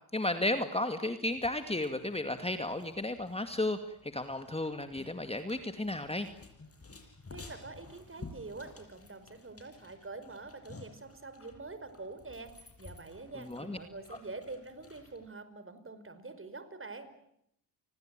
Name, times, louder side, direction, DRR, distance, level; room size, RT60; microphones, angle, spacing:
voice 1, 0.1-6.3 13.5-13.8, left 1 dB, 10° left, 9 dB, 2.3 m, -33 dB
sound 1, 1.3-15.3, left 3 dB, 30° left, 7.3 m, -54 dB
voice 2, 7.3-17.1, right 3 dB, 25° right, 12 dB, 5.1 m, -46 dB
30.0 x 20.0 x 9.0 m, 0.76 s
hypercardioid pair, 60°, 49 cm